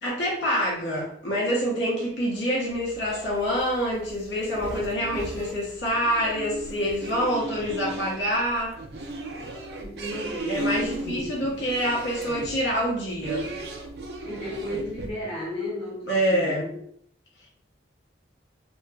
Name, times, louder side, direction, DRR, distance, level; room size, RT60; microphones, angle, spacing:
voice 1, 0.0-8.8 10.5-13.5 16.1-16.7, equal, 75° left, -5 dB, 0.9 m, -26 dB
sound 1, 2.7-15.1, right 2 dB, 60° right, 0.4 m, -36 dB
voice 2, 9.8-11.4 14.2-16.7, left 1 dB, 40° left, -15 dB, 1.5 m, -34 dB
2.9 x 2.4 x 2.3 m, 0.68 s
head